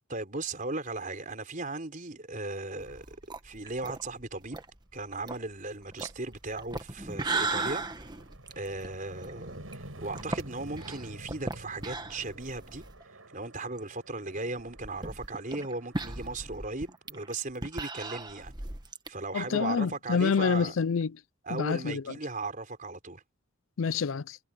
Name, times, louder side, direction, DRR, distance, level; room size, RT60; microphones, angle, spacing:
voice 1, 0.1-3.2 3.4-4.6 4.9-8.1 8.6-12.9 13.3-18.5 19.1-20.7 21.4-23.2, right 2 dB, 40° right, 4.6 m, -37 dB
sound 1, 2.8-13.0 13.4-13.5 13.8-13.9 14.6-19.1, right 3 dB, 20° right, 1.3 m, -37 dB
sound 2, 6.1-6.2 6.7-17.5, right 1 dB, 75° right, 7.5 m, -49 dB
voice 2, 19.3-21.2 21.5-22.0 23.8-24.4, left 5 dB, 70° left, 0.5 m, -27 dB
head